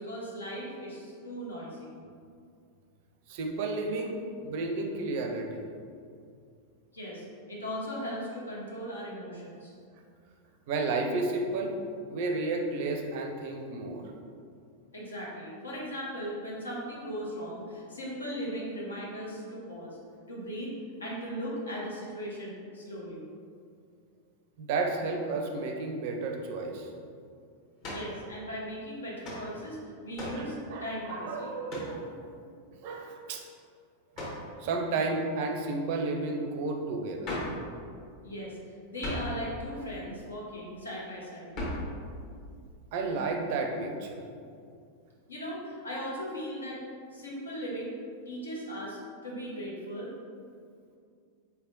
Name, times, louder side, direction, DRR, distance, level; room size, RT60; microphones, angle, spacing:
voice 1, 0.0-1.9 6.9-9.7 14.9-20.0 20.3-20.7 21.0-23.2 27.9-31.5 38.2-38.6 38.9-41.5 45.3-46.8 47.1-47.9 48.3-50.1, equal, 75° left, -4 dB, 0.9 m, -38 dB
voice 2, 3.3-5.6 10.7-11.7 12.1-14.0 24.6-26.9 30.3-32.3 32.8-33.4 34.2-34.3 34.6-37.3 42.9-44.2, right 3 dB, 50° right, 3 dB, 0.4 m, -32 dB
sound 1, 27.8-28.1 29.2-29.5 30.1-30.5 31.7-32.0 34.1-34.4 37.2-37.6 39.0-39.4 41.5-41.9, left 1 dB, 40° left, 1.1 m, -36 dB
4.3 x 3.4 x 2.5 m, 2.3 s
figure-of-eight pair, 90°, 0 cm